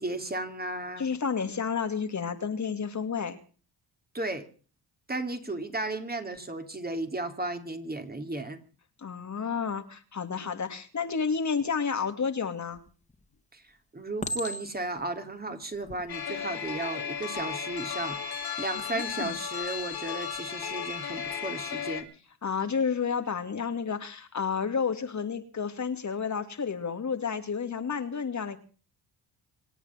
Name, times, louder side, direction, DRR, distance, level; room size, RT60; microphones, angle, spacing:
voice 1, 0.0-1.1 4.1-4.5 5.1-8.6 13.5-13.6 13.9-18.3 18.6-22.1, right 2 dB, 25° right, 6 dB, 3.2 m, -34 dB
voice 2, 1.0-3.4 9.0-12.8 18.9-19.4 22.4-28.6, left 6 dB, 45° left, 7 dB, 2.6 m, -31 dB
Chink clink, 12.7-13.2 14.2-15.0 15.7-16.0, equal, 15° left, 2.9 m, -36 dB
sound 1, 16.1-22.0, left 7 dB, 65° left, 3.2 m, -35 dB
26.0 x 8.8 x 5.9 m, 0.40 s
cardioid pair, 75°, 40 cm